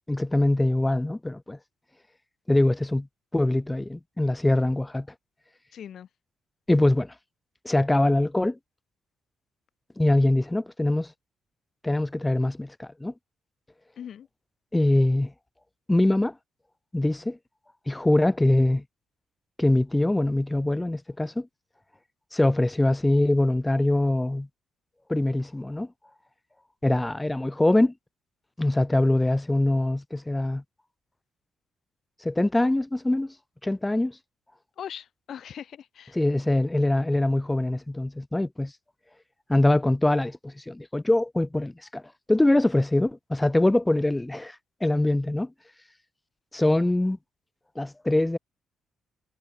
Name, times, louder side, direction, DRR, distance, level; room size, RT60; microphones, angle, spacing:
voice 1, 0.1-1.6 2.5-3.1 3.3-5.1 6.7-7.1 7.6-8.6 10.0-11.1 11.8-13.1 14.7-15.3 15.9-16.3 16.9-17.4 17.9-18.8 19.6-21.5 22.3-24.5 25.1-25.9 26.8-27.9 28.6-30.6 32.2-33.3 33.6-34.2 36.1-38.7 39.5-42.0 42.3-44.6 44.8-45.5 46.5-47.2 47.8-48.4, left 1 dB, 10° left, 0.3 m, -23 dB
voice 2, 5.7-6.1 14.0-14.3 34.8-36.2, left 9 dB, 60° left, 1.0 m, -40 dB
cardioid pair, 90°, 0 cm